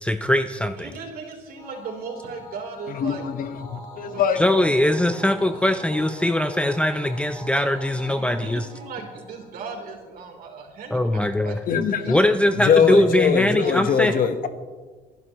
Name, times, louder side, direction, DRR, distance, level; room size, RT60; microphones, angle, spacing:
voice 1, 0.0-0.9 4.4-8.7 10.9-11.6 12.1-14.1, left 1 dB, 5° left, 8 dB, 0.6 m, -21 dB
voice 2, 0.8-3.5 4.1-4.2 5.4-5.7 7.9-11.5 12.0-14.3, right 5 dB, 60° right, 1 dB, 3.6 m, -38 dB
sound 1, 1.6-10.2, left 2 dB, 25° left, 2.8 m, -43 dB
voice 3, 2.9-4.4 11.7-12.2 12.6-14.5, left 7 dB, 55° left, 9 dB, 1.2 m, -22 dB
28.5 x 11.0 x 3.1 m, 1.4 s
cardioid pair, 110°, 17 cm